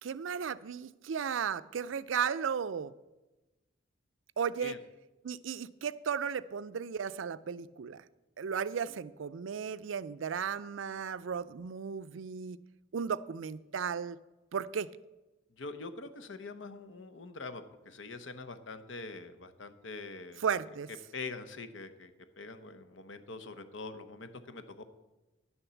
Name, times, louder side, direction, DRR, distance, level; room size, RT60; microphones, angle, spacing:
voice 1, 0.0-2.9 4.4-4.8 5.2-8.0 8.4-12.6 12.9-14.2 14.5-14.9 20.4-20.9, right 7 dB, 80° right, 16 dB, 0.4 m, -35 dB
voice 2, 15.6-20.4 21.1-24.8, left 3 dB, 75° left, 10 dB, 0.9 m, -44 dB
10.5 x 7.1 x 7.0 m, 1.1 s
head